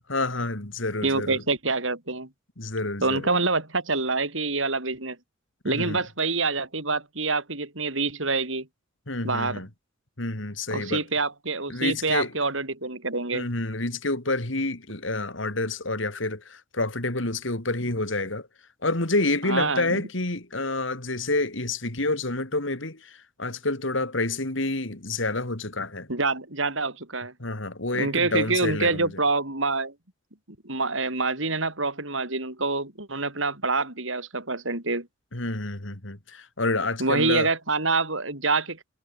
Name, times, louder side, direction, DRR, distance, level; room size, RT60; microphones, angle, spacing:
voice 1, 0.1-1.4 2.6-3.3 5.6-6.0 9.1-9.7 10.2-11.0 11.7-12.3 13.3-18.5 18.8-26.1 27.4-29.1 35.3-37.5, left 2 dB, 70° left, 3.5 m, -28 dB
voice 2, 1.0-2.3 3.0-5.2 5.6-8.7 9.2-9.6 10.7-13.5 19.4-20.0 26.1-27.3 27.9-29.9 30.6-35.1 37.0-38.9, right 3 dB, 75° right, 6.4 m, -26 dB
head